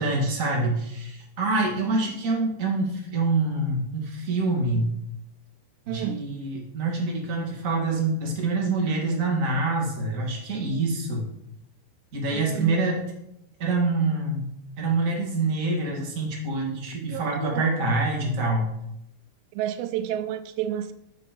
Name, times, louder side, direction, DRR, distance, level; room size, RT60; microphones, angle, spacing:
voice 1, 0.0-4.9 5.9-11.3 12.1-13.1 13.6-14.4 14.8-18.7, right 3 dB, 30° right, -2 dB, 1.5 m, -26 dB
voice 2, 5.9-6.3 12.3-12.9 17.1-17.9 19.5-20.9, right 11 dB, 85° right, 11 dB, 2.7 m, -31 dB
10.5 x 5.6 x 5.3 m, 0.82 s
omnidirectional pair, 4.9 m